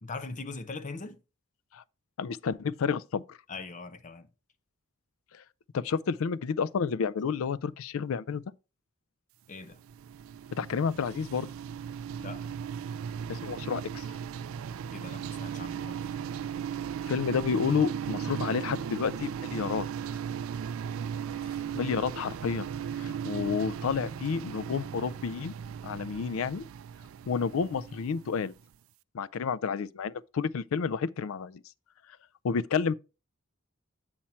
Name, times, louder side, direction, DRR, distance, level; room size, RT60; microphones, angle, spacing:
voice 1, 0.0-1.2 3.5-4.3 9.5-9.8 12.2-12.4 14.9-16.0 21.3-21.8, left 3 dB, 35° left, 0.8 m, -41 dB
voice 2, 2.2-3.4 5.7-8.4 10.6-11.5 13.3-14.1 17.1-19.9 21.7-22.7 23.0-25.5 25.8-26.6 27.3-28.5 29.1-31.6 32.4-33.0, left 6 dB, 70° left, 0.4 m, -30 dB
sound 1, 9.6-28.6, right 8 dB, 70° right, 0.3 m, -37 dB
8.6 x 4.4 x 4.3 m
head